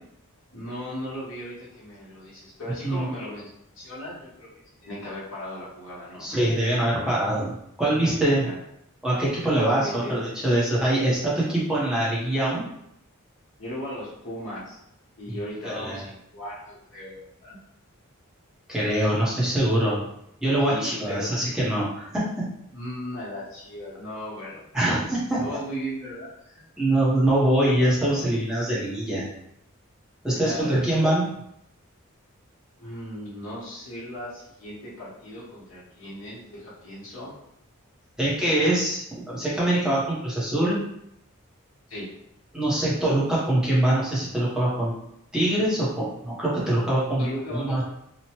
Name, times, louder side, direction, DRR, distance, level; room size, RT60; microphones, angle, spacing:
voice 1, 0.5-6.3 8.4-8.6 9.8-10.2 13.6-14.8 15.2-17.6 20.6-21.3 22.7-24.6 25.4-26.6 30.3-30.8 32.8-37.4 41.9-42.1 47.2-47.8, equal, 60° left, -8 dB, 1.0 m, -37 dB
voice 2, 6.2-8.5 9.0-12.6 15.3-15.4 15.6-16.0 18.7-20.0 20.4-22.5 24.7-25.5 26.8-29.3 30.2-31.3 38.2-40.8 42.5-44.9 45.3-47.8, right 1 dB, 5° right, -7 dB, 0.7 m, -24 dB
2.9 x 2.1 x 2.9 m, 0.77 s
head